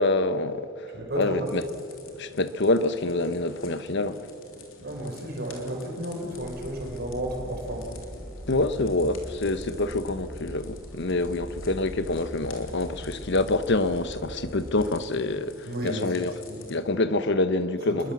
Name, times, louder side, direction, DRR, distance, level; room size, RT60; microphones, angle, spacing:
voice 1, 0.0-0.9 1.2-1.6 2.2-4.3 8.5-16.3 16.7-18.1, left 2 dB, 60° left, 1.1 m, -26 dB
voice 2, 0.9-1.6 4.8-7.9 15.6-16.1 16.5-16.7 17.9-18.1, right 1 dB, 50° right, 5.2 m, -33 dB
sound 1, 1.5-16.8, left 3 dB, 75° left, 3.5 m, -49 dB
sound 2, 6.3-14.9, equal, 5° right, 1.5 m, -41 dB
29.0 x 21.5 x 7.5 m
head